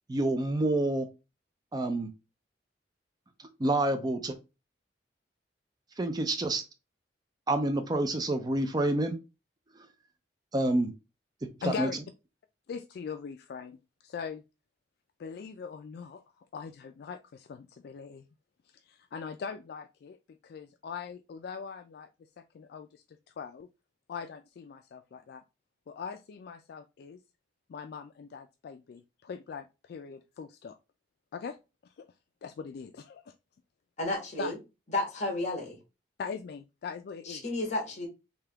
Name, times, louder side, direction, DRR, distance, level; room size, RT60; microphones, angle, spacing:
voice 1, 0.1-1.1 1.7-2.1 3.6-4.4 6.0-6.6 7.5-9.1 10.5-10.9 11.6-11.9, right 1 dB, 20° right, 0.4 m, -28 dB
voice 2, 11.6-12.0 12.7-14.4 15.2-18.3 18.7-20.2 20.4-22.1 22.4-23.7 24.1-25.4 25.9-27.2 27.7-30.8 31.3-31.6 32.0-32.1 32.4-33.3 34.4-34.6 36.2-37.4, left 6 dB, 60° left, 0.3 m, -41 dB
voice 3, 34.0-34.6 34.9-35.8 37.3-38.1, left 2 dB, 40° left, 1.3 m, -32 dB
3.5 x 2.8 x 3.4 m
head